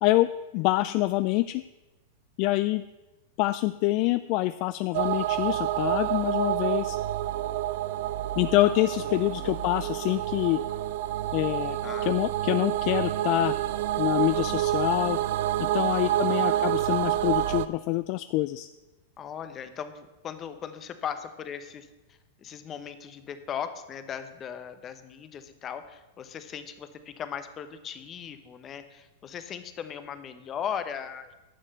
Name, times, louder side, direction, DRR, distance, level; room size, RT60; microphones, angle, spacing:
voice 1, 0.0-1.6 2.4-2.8 3.4-7.0 8.4-10.6 11.3-11.8 12.0-13.6 14.0-15.2 15.6-18.7, left 18 dB, 50° left, 14 dB, 0.3 m, -26 dB
voice 2, 0.5-1.0 9.0-9.6 11.8-12.2 16.0-16.7 19.2-31.3, left 8 dB, 30° left, 10 dB, 1.0 m, -38 dB
sound 1, 4.9-17.7, right 13 dB, 65° right, 0.5 m, -28 dB
11.0 x 6.5 x 6.8 m, 1.1 s
hypercardioid pair, 125°, 0 cm